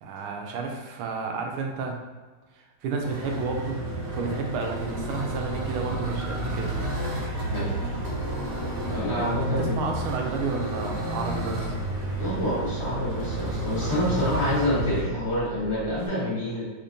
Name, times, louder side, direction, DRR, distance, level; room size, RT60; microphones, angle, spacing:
voice 1, 0.0-1.9 2.8-3.8 4.1-6.8 8.9-11.7, right 4 dB, 80° right, 2 dB, 1.5 m, -31 dB
sound 1, 3.0-15.0, right 1 dB, 65° right, 0.9 m, -31 dB
sound 2, 4.8-16.1, right 3 dB, 50° left, 1.1 m, -42 dB
voice 2, 7.4-7.7 8.9-9.9 12.2-16.6, left 1 dB, 20° left, -9 dB, 1.0 m, -27 dB
sound 3, 7.8-11.4, left 2 dB, 75° left, 1.4 m, -43 dB
4.4 x 2.8 x 2.6 m, 1.3 s
omnidirectional pair, 2.3 m